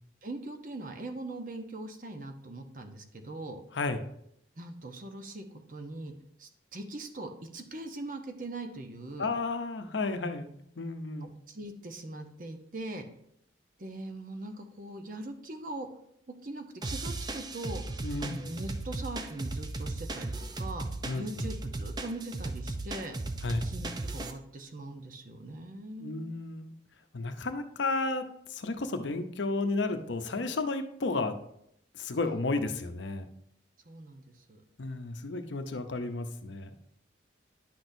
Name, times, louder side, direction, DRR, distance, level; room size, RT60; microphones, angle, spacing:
voice 1, 0.2-3.6 4.6-6.1 6.4-9.3 11.5-13.1 13.8-15.9 16.4-17.8 18.2-20.9 21.1-23.1 23.5-26.3 33.9-34.2 34.5-34.6, right 2 dB, 45° right, 6 dB, 0.8 m, -41 dB
voice 2, 9.2-10.5 10.8-11.3 18.0-18.4 21.0-21.5 23.4-23.6 26.0-26.7 27.1-31.3 31.9-33.3 34.8-36.9, left 3 dB, 80° left, 8 dB, 0.7 m, -32 dB
sound 1, 16.8-24.3, right 2 dB, 20° right, 0.4 m, -36 dB
10.0 x 6.1 x 2.7 m, 0.72 s
head